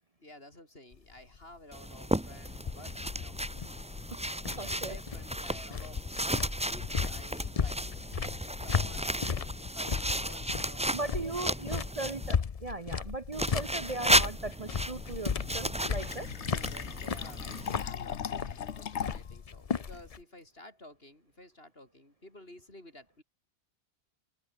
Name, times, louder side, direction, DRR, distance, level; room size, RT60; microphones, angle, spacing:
voice 1, 0.2-3.7 4.6-8.0 8.4-11.5 16.5-23.2, left 1 dB, 60° left, 7.7 m, -53 dB
sound 1, 0.9-20.2, left 6 dB, 40° left, 0.7 m, -36 dB
sound 2, 1.7-12.3 13.3-17.7, right 1 dB, 5° right, 1.1 m, -34 dB
voice 2, 4.6-5.0 10.9-16.3, right 2 dB, 35° right, 1.0 m, -38 dB
Fill (with liquid), 15.4-19.4, left 8 dB, 90° left, 1.3 m, -39 dB
open air
omnidirectional pair, 1.1 m